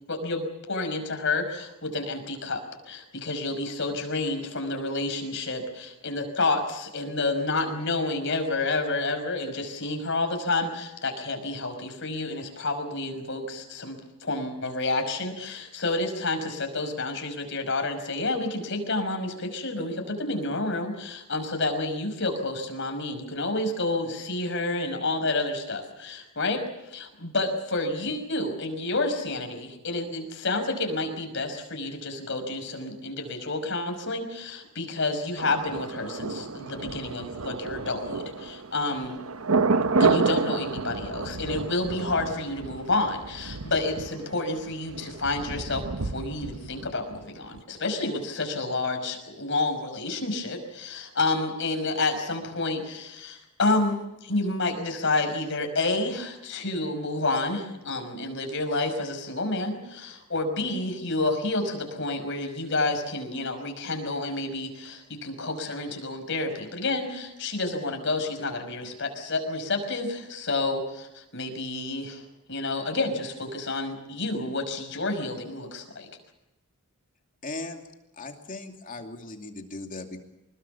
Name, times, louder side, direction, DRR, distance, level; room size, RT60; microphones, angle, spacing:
voice 1, 0.1-39.2 40.0-72.2 72.5-76.1, left 2 dB, 55° left, 5 dB, 5.5 m, -29 dB
Thunder, 35.4-47.2 47.5-47.6, right 4 dB, 70° right, 1.1 m, -30 dB
voice 2, 77.4-77.8 78.2-80.2, left 2 dB, 35° left, 4 dB, 2.7 m, -38 dB
26.0 x 21.0 x 7.2 m, 0.93 s
head